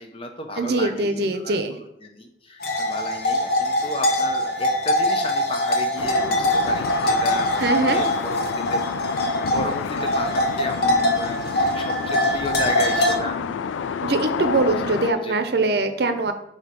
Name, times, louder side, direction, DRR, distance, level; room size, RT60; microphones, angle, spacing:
voice 1, 0.0-8.8 9.5-13.6 14.7-14.8 15.2-15.4, left 2 dB, 30° left, 5 dB, 0.7 m, -33 dB
voice 2, 0.6-1.7 7.6-8.0 14.0-16.3, right 2 dB, 60° right, 8 dB, 0.6 m, -22 dB
sound 1, 2.6-13.2, left 1 dB, 55° left, 0.9 m, -23 dB
sound 2, 6.0-15.1, left 6 dB, 90° left, 0.3 m, -29 dB
7.9 x 2.8 x 5.2 m, 0.81 s
head